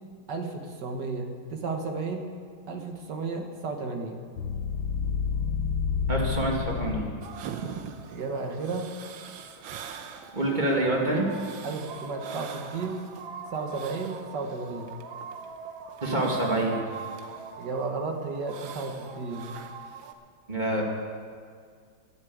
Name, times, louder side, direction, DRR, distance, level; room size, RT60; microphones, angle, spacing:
voice 1, 0.3-2.3 2.7-4.3 8.1-8.9 11.6-13.0 13.5-14.9 17.6-19.6, right 3 dB, 60° right, 4 dB, 1.9 m, -33 dB
sound 1, 4.4-7.4, left 6 dB, 90° left, 1.5 m, -29 dB
voice 2, 6.1-7.1 10.3-11.3 16.0-16.8 20.5-20.8, right 1 dB, 25° right, -2 dB, 2.4 m, -26 dB
sound 2, 7.2-20.1, right 6 dB, 80° right, 1.7 m, -41 dB
12.0 x 10.5 x 8.6 m, 2.1 s
omnidirectional pair, 2.1 m